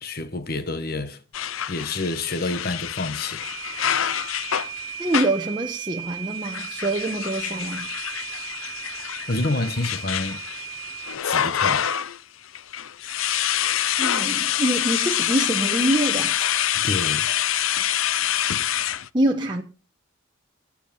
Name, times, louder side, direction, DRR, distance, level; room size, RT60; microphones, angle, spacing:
voice 1, 0.0-1.2 1.7-3.4 9.0-10.4 11.2-11.9 16.7-17.3, left 2 dB, 45° left, 1.2 m, -28 dB
sound 1, 1.3-5.5 6.4-12.2 12.5-19.1, left 10 dB, 80° left, 0.6 m, -26 dB
sound 2, 3.4-11.2, right 11 dB, 70° right, 1.3 m, -36 dB
voice 2, 5.0-7.9 14.0-16.4 19.1-19.6, right 1 dB, 20° right, 1.0 m, -25 dB
19.5 x 7.3 x 5.7 m
head